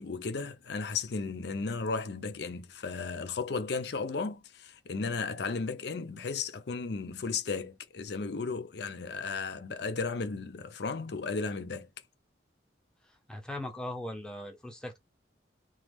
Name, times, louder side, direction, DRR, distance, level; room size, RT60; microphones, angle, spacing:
voice 1, 0.0-11.9, left 4 dB, 60° left, 0.5 m, -35 dB
voice 2, 13.0-15.0, left 1 dB, 5° left, 0.7 m, -39 dB
3.0 x 2.3 x 3.4 m
head